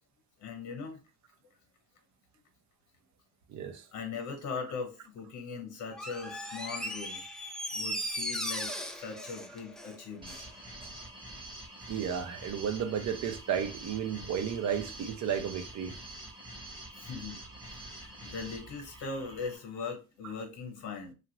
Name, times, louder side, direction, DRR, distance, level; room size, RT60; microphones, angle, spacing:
voice 1, 0.4-1.0 3.9-7.2 7.7-10.4 16.9-21.1, left 5 dB, 80° left, 1.1 m, -40 dB
voice 2, 3.5-3.8 11.9-15.9, right 8 dB, 65° right, 0.6 m, -33 dB
Door, 5.9-10.5 10.8-10.9, equal, ahead, 0.4 m, -37 dB
sound 1, 10.2-19.6, right 1 dB, 15° right, 0.9 m, -46 dB
2.8 x 2.5 x 2.9 m
cardioid pair, 90°, 30 cm